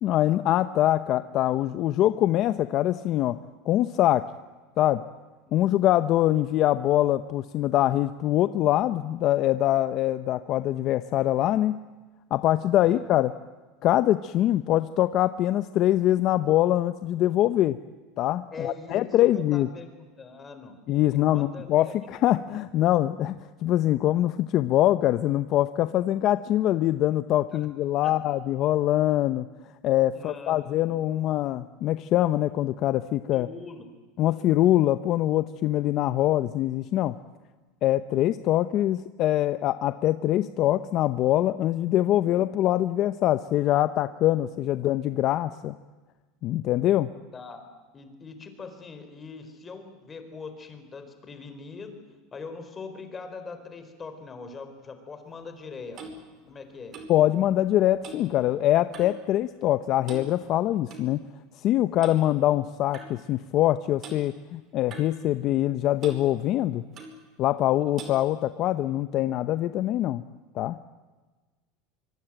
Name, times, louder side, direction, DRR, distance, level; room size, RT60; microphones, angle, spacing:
voice 1, 0.0-3.4 3.7-4.2 4.8-5.0 5.5-11.8 12.3-13.3 13.8-17.8 18.2-19.7 20.9-29.5 29.8-33.5 34.2-37.2 37.8-45.7 46.4-47.1 57.1-61.2 61.6-66.8 67.4-70.2 70.5-70.8, left 13 dB, 45° left, 12 dB, 0.8 m, -24 dB
voice 2, 18.5-19.1 19.3-20.7 21.1-21.9 27.5-27.7 28.0-28.1 30.1-31.0 33.3-33.8 47.3-47.6 47.9-52.0 52.3-56.0 56.5-57.0, left 4 dB, 20° left, 8 dB, 4.4 m, -42 dB
Clock, 55.4-59.3 59.5-59.8 60.0-61.1 62.0-62.2 62.9-63.1 64.0-64.2 64.9-65.7 66.0-66.2 66.9-67.2 68.0-68.2, right 3 dB, 40° right, 5.2 m, -44 dB
24.5 x 24.0 x 9.1 m, 1.3 s
supercardioid pair, 140°, 0 cm